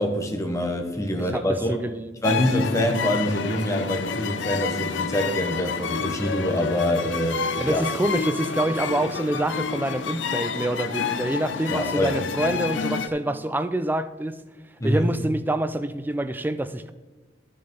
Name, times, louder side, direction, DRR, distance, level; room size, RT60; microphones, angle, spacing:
voice 1, 0.0-1.8 2.2-7.8 11.7-12.1 14.8-15.1, left 1 dB, 15° left, 3 dB, 1.3 m, -25 dB
voice 2, 1.2-2.1 7.6-14.4 14.8-16.9, right 1 dB, 10° right, 11 dB, 0.4 m, -26 dB
sound 1, 2.2-13.1, left 5 dB, 70° left, 0.7 m, -29 dB
11.5 x 6.6 x 5.4 m, 1.2 s
head